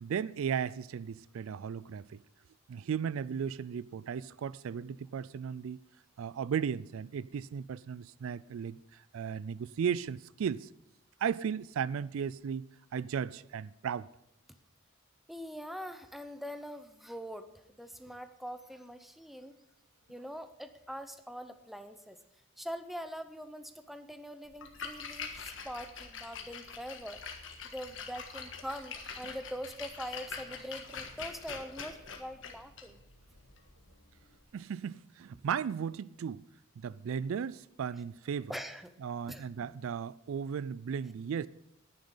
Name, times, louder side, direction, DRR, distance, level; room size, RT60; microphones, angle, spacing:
voice 1, 0.0-2.2 2.7-5.8 6.2-10.7 11.2-14.1 34.5-36.4 36.8-38.5 39.0-41.5, right 7 dB, 75° right, 0.3 m, -35 dB
voice 2, 15.3-19.5 20.1-22.2 22.6-27.2 27.7-33.0 38.5-38.9 39.3-39.7, equal, ahead, 0.6 m, -43 dB
Splash splatter, 24.5-34.4, left 5 dB, 60° left, 1.5 m, -45 dB
10.5 x 9.6 x 5.6 m
head